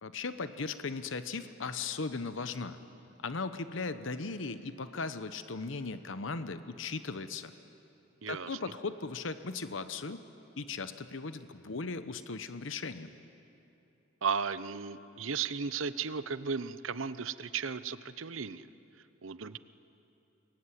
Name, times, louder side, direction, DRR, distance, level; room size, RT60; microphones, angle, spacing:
voice 1, 0.0-2.8 3.2-7.5 8.3-10.2 10.6-13.1, left 4 dB, 70° left, 11 dB, 0.9 m, -37 dB
voice 2, 8.2-8.7 14.2-18.7 19.2-19.6, right 6 dB, 85° right, 14 dB, 0.8 m, -35 dB
25.5 x 21.5 x 9.9 m, 2.8 s
head